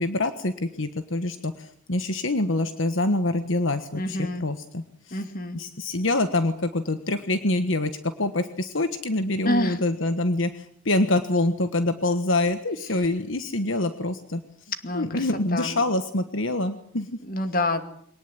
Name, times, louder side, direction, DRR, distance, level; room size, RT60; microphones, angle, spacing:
voice 1, 0.0-5.2 5.5-7.9 8.2-14.4 14.9-17.1, left 2 dB, 65° left, 9 dB, 1.4 m, -25 dB
voice 2, 3.9-4.5 5.1-5.6 9.4-9.8 14.8-15.3 15.5-15.8 17.2-18.0, left 1 dB, 40° left, 8 dB, 2.4 m, -28 dB
23.5 x 19.0 x 9.2 m, 0.67 s
head